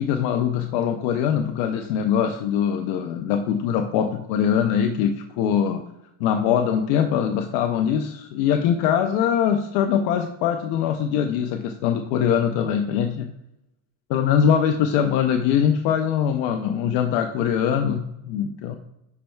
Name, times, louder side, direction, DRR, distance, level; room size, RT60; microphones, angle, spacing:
voice 1, 0.0-5.8 6.2-13.3 14.1-18.8, left 8 dB, 60° left, 4 dB, 0.6 m, -22 dB
11.0 x 4.4 x 2.3 m, 0.84 s
supercardioid pair, 135°, 42 cm